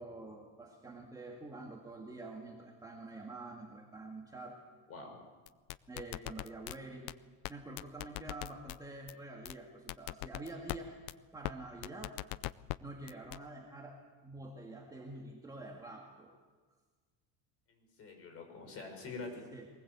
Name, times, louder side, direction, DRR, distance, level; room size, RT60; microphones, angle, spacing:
voice 1, 0.0-4.6 5.9-7.1 7.5-11.0 11.3-12.2 12.8-16.5 19.5-19.7, right 2 dB, 10° right, -1 dB, 1.9 m, -47 dB
sound 1, 5.5-6.8 7.1-7.2 7.4-7.5 7.8-8.8 9.1-9.2 9.5-9.6 9.9-10.8 11.1-11.2 11.4-11.5 11.8-12.8 13.1-13.4, left 20 dB, 70° left, 0.7 m, -39 dB
voice 2, 17.7-19.4, left 3 dB, 35° left, 4 dB, 5.8 m, -46 dB
23.0 x 19.5 x 8.2 m, 1.4 s
cardioid pair, 165°, 41 cm